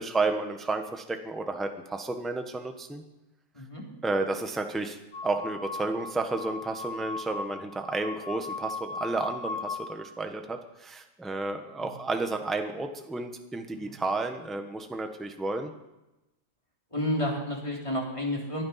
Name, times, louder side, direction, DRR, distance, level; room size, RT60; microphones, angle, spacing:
voice 1, 0.0-3.0 4.0-5.0 5.2-15.7, right 3 dB, ahead, 5 dB, 0.9 m, -31 dB
sound 1, 5.1-9.9, left 3 dB, 65° left, 1.8 m, -38 dB
voice 2, 16.9-18.6, left 1 dB, 15° left, -2 dB, 3.5 m, -31 dB
20.0 x 12.0 x 5.8 m, 0.99 s
omnidirectional pair, 1.9 m